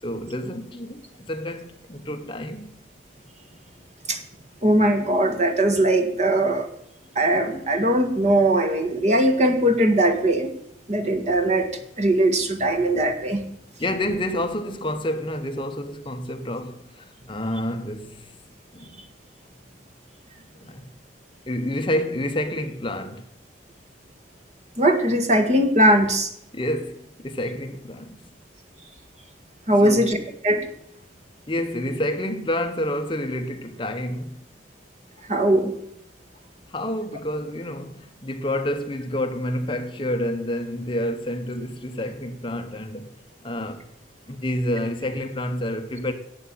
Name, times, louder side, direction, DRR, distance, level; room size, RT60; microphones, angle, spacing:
voice 1, 0.0-2.8 13.8-18.4 18.7-19.0 20.5-20.9 21.5-23.2 26.5-28.2 29.8-30.1 31.5-34.4 36.7-43.1 43.4-43.9 44.3-46.1, left 1 dB, 25° left, 0.9 m, -29 dB
voice 2, 4.6-6.7 7.1-10.5 10.9-11.7 12.0-13.4 24.8-26.3 29.7-30.2 30.4-30.7 35.3-35.7, right 1 dB, 35° right, 1.7 m, -20 dB
12.0 x 8.4 x 8.7 m
head